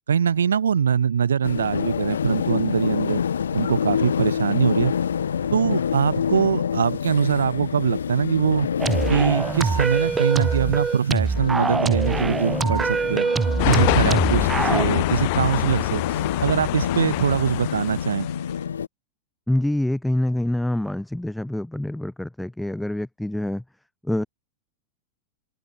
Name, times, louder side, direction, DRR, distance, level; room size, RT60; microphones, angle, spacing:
voice 1, 0.1-3.2 3.5-4.9 5.5-8.7 9.1-13.3 13.7-18.3, right 7 dB, 70° right, 0.7 m, -23 dB
sound 1, 1.4-18.9, left 7 dB, 70° left, 0.5 m, -28 dB
sound 2, 8.8-14.8, right 5 dB, 15° right, 2.1 m, -24 dB
sound 3, 13.6-18.5, left 28 dB, 45° left, 1.0 m, -25 dB
voice 2, 19.5-23.6 24.0-24.3, left 1 dB, 5° left, 1.0 m, -26 dB
open air
figure-of-eight pair, 90°, 0 cm